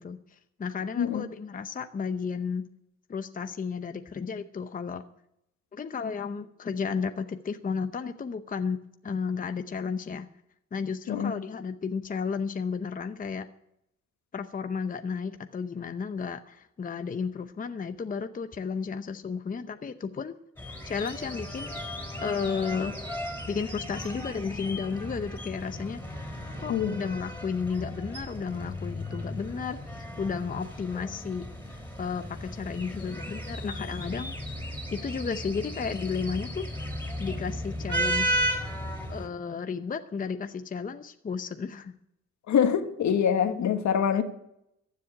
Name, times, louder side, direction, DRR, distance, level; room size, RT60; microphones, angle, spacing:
voice 1, 0.0-2.7 3.1-5.0 5.7-8.8 9.0-10.3 10.7-13.5 14.3-20.4 20.8-21.8 22.2-22.9 23.5-26.3 26.6-34.3 34.9-36.7 37.2-38.4 39.1-41.9, left 5 dB, 30° left, 0.8 m, -33 dB
sound 1, 20.6-39.3, equal, 5° left, 3.6 m, -35 dB
voice 2, 26.7-27.1 42.5-44.2, left 8 dB, 65° left, 1.6 m, -25 dB
15.0 x 7.5 x 9.8 m
cardioid pair, 90°, 30 cm